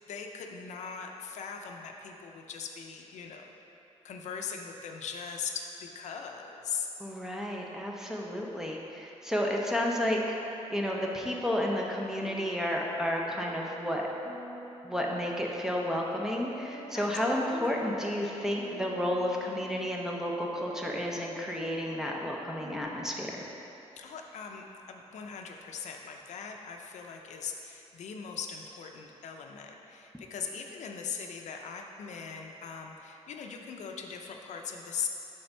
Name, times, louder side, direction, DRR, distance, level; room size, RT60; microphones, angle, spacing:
voice 1, 0.1-3.5 4.0-6.9 16.9-17.1 17.6-17.7 24.0-35.1, left 6 dB, 85° left, 3 dB, 0.6 m, -40 dB
voice 2, 7.0-14.0 14.8-23.3, equal, 5° right, -1 dB, 0.6 m, -31 dB
sound 1, 9.8-22.8, equal, 40° right, 1.0 m, -48 dB
7.6 x 3.5 x 5.4 m, 2.9 s
wide cardioid pair, 145°, 12 cm